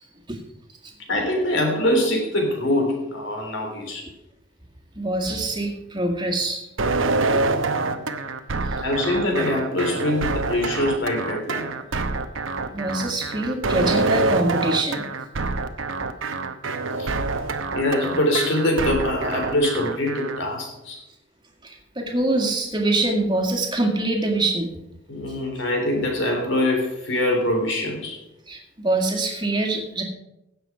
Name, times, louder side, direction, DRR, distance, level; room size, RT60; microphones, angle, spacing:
voice 1, 1.1-4.1 7.8-8.1 8.8-11.7 17.0-17.1 17.7-21.0 25.1-28.2, left 1 dB, 70° left, 2 dB, 3.4 m, -24 dB
voice 2, 5.0-6.7 7.3-7.4 8.7-8.8 12.7-15.1 21.6-24.7 28.5-30.0, right 2 dB, 25° right, 2 dB, 1.8 m, -24 dB
sound 1, 6.8-20.4, right 3 dB, 85° right, 0.9 m, -26 dB
16.5 x 7.1 x 4.8 m, 0.91 s
head